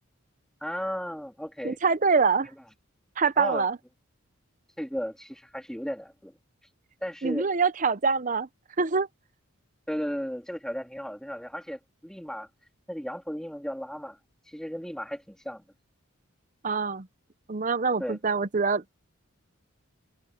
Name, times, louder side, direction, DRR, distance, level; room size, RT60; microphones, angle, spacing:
voice 1, 0.6-1.8 3.4-3.6 4.8-6.3 6.6-6.7 7.0-7.5 9.9-12.5 12.9-15.6 18.0-18.2, equal, 5° left, 2.9 m, -35 dB
voice 2, 1.6-2.5 3.2-3.8 7.2-8.5 8.8-9.1 16.6-17.1 17.5-18.9, right 5 dB, 35° right, 0.6 m, -25 dB
head